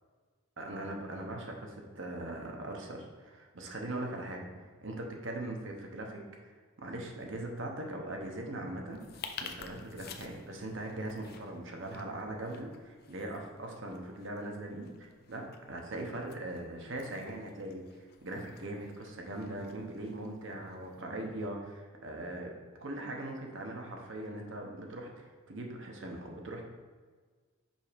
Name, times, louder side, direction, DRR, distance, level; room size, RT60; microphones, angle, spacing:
voice 1, 0.6-9.0 9.4-22.5 22.8-26.6, right 1 dB, 60° right, 1 dB, 0.9 m, -40 dB
sound 1, 8.9-21.0, left 6 dB, 45° left, 0.4 m, -51 dB
5.4 x 4.2 x 5.1 m, 1.5 s
head